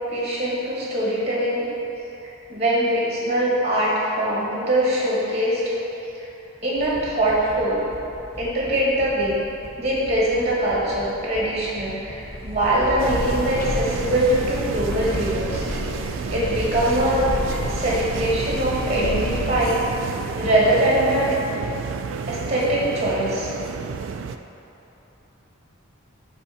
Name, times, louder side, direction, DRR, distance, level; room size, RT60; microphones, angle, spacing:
voice 1, 0.1-1.6 2.5-5.7 6.6-7.8 8.4-9.4 9.8-15.6 15.9-17.3 17.7-21.4 22.3-23.5, right 1 dB, 35° right, -6 dB, 1.4 m, -22 dB
sound 1, 6.7-15.1, equal, 15° left, 0.7 m, -42 dB
sound 2, 12.1-20.6, left 1 dB, 50° left, 0.8 m, -31 dB
sound 3, 13.0-24.4, right 5 dB, 75° right, 0.3 m, -31 dB
5.6 x 4.4 x 5.7 m, 3.0 s
head